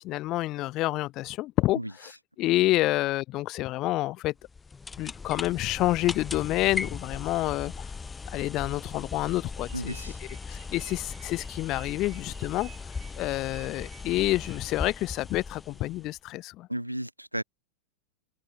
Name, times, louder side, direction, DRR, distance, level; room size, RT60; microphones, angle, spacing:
voice 1, 0.0-2.1 2.4-4.3 5.0-7.9 8.3-9.9 10.5-12.7 13.2-16.7, left 17 dB, 35° left, 0.4 m, -28 dB
sound 1, 4.4-16.2, left 4 dB, 15° left, 1.3 m, -38 dB
sound 2, 9.6-14.9, right 21 dB, 40° right, 4.9 m, -54 dB
voice 2, 9.7-10.2 16.7-17.4, right 1 dB, 90° right, 0.5 m, -33 dB
open air
figure-of-eight pair, 90°, 0 cm